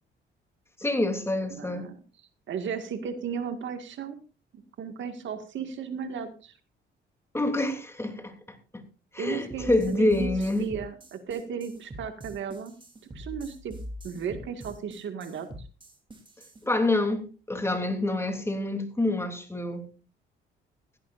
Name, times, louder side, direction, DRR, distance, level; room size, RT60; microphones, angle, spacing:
voice 1, 0.8-1.9 7.3-8.3 8.7-8.8 9.1-10.7 16.6-19.9, left 2 dB, 15° left, 3.1 m, -27 dB
voice 2, 1.5-1.9 2.5-4.2 4.8-6.6 9.2-10.3 10.6-12.8 13.1-13.8 14.0-15.5, right 7 dB, 70° right, 2.0 m, -35 dB
sound 1, 9.5-16.6, equal, 25° right, 3.4 m, -43 dB
16.5 x 15.0 x 2.6 m
cardioid pair, 90°, 20 cm